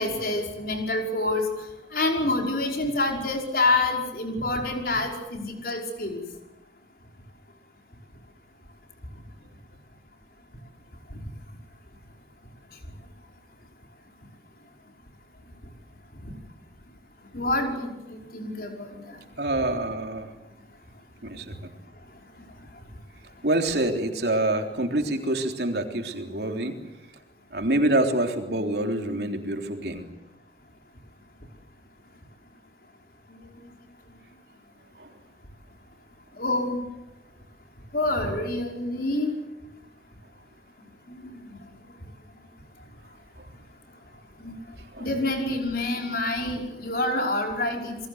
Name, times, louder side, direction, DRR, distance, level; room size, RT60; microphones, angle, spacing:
voice 1, 0.0-1.5 1.9-6.2 17.3-17.9 18.3-19.0 36.4-36.8 37.9-39.3 41.1-41.6 44.4-44.5 45.0-48.1, left 2 dB, 55° left, 2 dB, 5.5 m, -27 dB
voice 2, 19.4-20.3 21.2-21.7 23.4-26.8 27.5-30.1 35.0-35.1 44.9-45.1, right 1 dB, 65° right, 4 dB, 3.6 m, -26 dB
29.0 x 22.0 x 8.1 m, 0.96 s
head